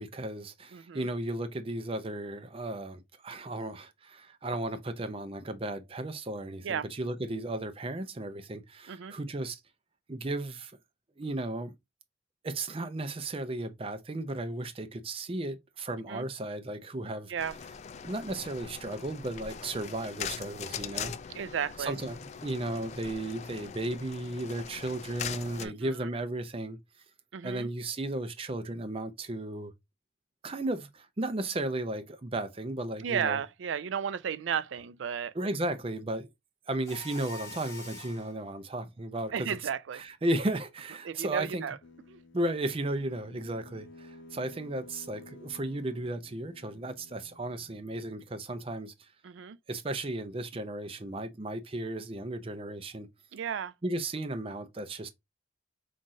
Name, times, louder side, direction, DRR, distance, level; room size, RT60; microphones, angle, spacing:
voice 1, 0.0-9.6 10.1-10.7 11.2-11.7 12.4-17.3 18.0-21.1 21.8-26.8 27.4-29.7 30.4-33.4 35.3-36.3 36.7-39.6 39.9-41.6 42.3-48.9 49.7-53.1 53.8-55.1, right 1 dB, 30° right, 0.5 m, -35 dB
voice 2, 0.7-1.1 6.6-6.9 8.9-9.1 16.1-16.2 17.3-17.6 21.3-21.9 25.6-26.1 27.3-27.7 33.0-35.3 39.3-40.0 41.0-41.8 42.1-42.2 49.2-49.6 53.3-53.7, right 7 dB, 85° right, 0.4 m, -34 dB
sound 1, 17.4-25.7, left 7 dB, 35° left, 0.3 m, -41 dB
Mechanisms, 36.8-38.3, left 2 dB, 15° left, 1.3 m, -44 dB
sound 2, 41.8-48.3, left 2 dB, 85° left, 0.7 m, -53 dB
5.6 x 2.5 x 2.5 m
head